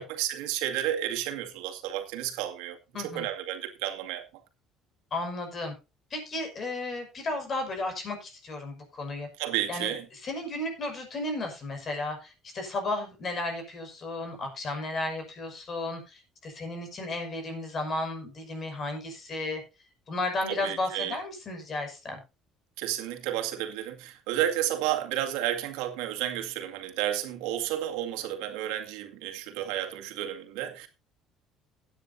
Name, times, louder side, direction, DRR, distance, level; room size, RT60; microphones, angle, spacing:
voice 1, 0.0-4.2 9.4-10.1 20.5-21.2 22.8-30.9, right 12 dB, 80° right, 2.1 m, -32 dB
voice 2, 2.9-3.3 5.1-5.7 6.1-9.3 9.7-9.9 10.2-19.6 20.1-22.2, left 2 dB, 40° left, 6.0 m, -34 dB
16.5 x 9.4 x 2.7 m
supercardioid pair, 85°, 0 cm